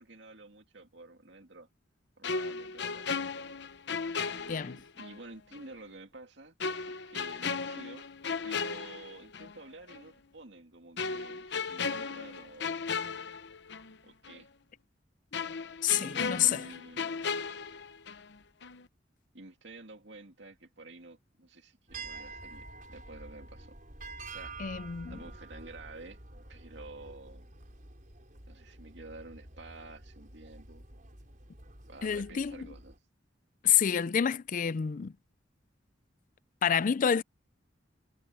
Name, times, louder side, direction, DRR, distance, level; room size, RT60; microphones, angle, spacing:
voice 1, 0.0-1.7 2.2-3.1 4.2-6.6 6.9-8.1 8.4-12.7 14.0-14.5 15.9-17.2 19.3-23.8 24.3-24.6 25.1-26.2 26.5-27.5 28.5-30.8 31.9-33.0, right 2 dB, 70° right, 2.6 m, -50 dB
sound 1, 2.2-5.2 5.5-5.7 6.6-9.6 9.9-10.1 11.0-14.0 14.3-14.4 15.3-18.4 18.6-18.9, left 5 dB, 65° left, 0.9 m, -36 dB
voice 2, 15.8-16.6 24.6-25.2 32.0-32.5 33.6-35.1 36.6-37.2, left 8 dB, 45° left, 0.4 m, -28 dB
sound 2, 21.9-33.0, right 3 dB, 45° right, 5.1 m, -48 dB
head